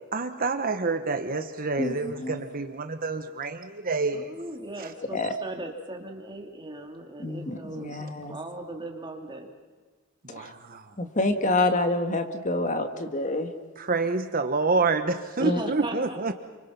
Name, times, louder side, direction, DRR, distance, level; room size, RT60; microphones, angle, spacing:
voice 1, 0.1-4.2 10.2-10.8 13.8-16.3, right 3 dB, 40° right, 7 dB, 1.1 m, -28 dB
voice 2, 1.8-2.4 5.1-5.3 7.2-8.4 10.3-10.5 11.0-13.5 15.4-15.6, left 2 dB, 35° left, 6 dB, 1.8 m, -27 dB
voice 3, 4.1-9.5 15.4-16.3, right 1 dB, 20° right, 2 dB, 2.9 m, -38 dB
28.5 x 25.5 x 5.9 m, 1.4 s
head